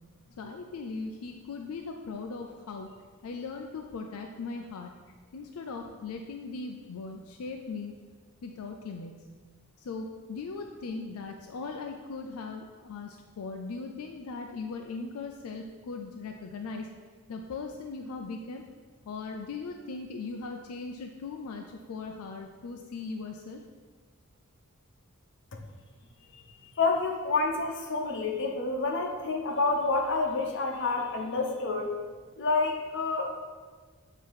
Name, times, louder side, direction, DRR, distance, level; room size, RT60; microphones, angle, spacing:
voice 1, 0.4-2.9 3.2-4.9 5.3-7.9 8.4-9.1 9.8-16.9 17.3-18.6 19.0-23.6, left 4 dB, 85° left, 3 dB, 0.4 m, -39 dB
voice 2, 26.3-31.9 32.4-33.5, left 3 dB, 55° left, 2 dB, 0.8 m, -29 dB
7.5 x 2.9 x 4.7 m, 1.5 s
head